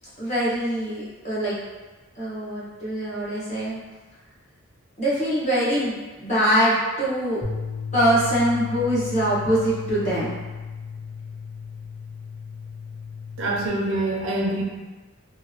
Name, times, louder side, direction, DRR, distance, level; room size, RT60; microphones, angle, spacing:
voice 1, 0.2-1.6 2.1-3.8 5.0-7.4 7.9-10.3, equal, 30° left, -9 dB, 1.1 m, -23 dB
sound 1, 7.4-13.7, left 5 dB, ahead, 0.8 m, -34 dB
voice 2, 13.4-14.6, right 1 dB, 60° right, -1 dB, 0.4 m, -25 dB
2.9 x 2.5 x 2.8 m, 1.3 s
head